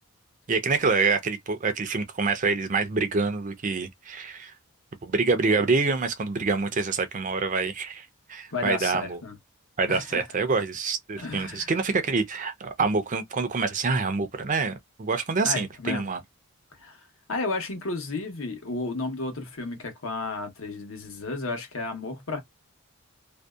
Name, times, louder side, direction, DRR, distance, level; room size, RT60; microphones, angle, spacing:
voice 1, 0.5-4.5 5.0-9.2 9.8-16.2, right 4 dB, 35° right, 0.5 m, -26 dB
voice 2, 8.5-9.4 9.9-10.2 11.2-11.7 15.4-16.1 16.8-22.4, left 3 dB, 65° left, 1.0 m, -32 dB
2.6 x 2.1 x 2.3 m
head